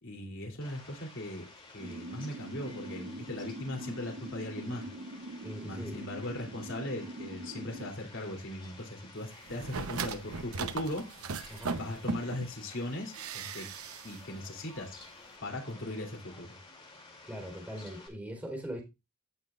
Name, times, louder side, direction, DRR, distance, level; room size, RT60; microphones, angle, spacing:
voice 1, 0.0-1.5 1.7-4.9 5.6-11.0 11.7-13.7 14.0-14.9 15.4-16.5, left 1 dB, 60° left, 3.1 m, -39 dB
Fowl, 0.6-18.1, left 3 dB, 25° left, 2.7 m, -53 dB
sound 1, 1.8-7.9, right 1 dB, 55° right, 1.0 m, -43 dB
voice 2, 5.4-6.0 11.5-11.8 17.3-18.8, equal, 5° right, 3.8 m, -40 dB
sound 2, 9.5-12.5 13.1-14.2 14.4-14.5, right 5 dB, 80° right, 0.8 m, -37 dB
17.0 x 6.0 x 2.5 m
head